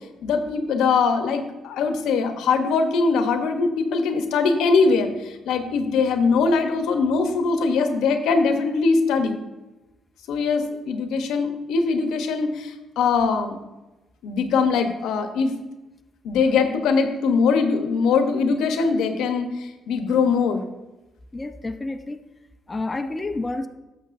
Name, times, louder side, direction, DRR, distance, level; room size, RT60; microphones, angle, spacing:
voice 1, 0.2-5.1 5.5-9.4 10.3-13.5 14.2-15.5 16.2-20.6, left 4 dB, 90° left, 7 dB, 0.8 m, -21 dB
voice 2, 21.3-22.2 22.7-23.7, left 2 dB, 20° left, 6 dB, 0.6 m, -29 dB
11.5 x 7.1 x 2.6 m, 1.1 s
cardioid pair, 100°, 0 cm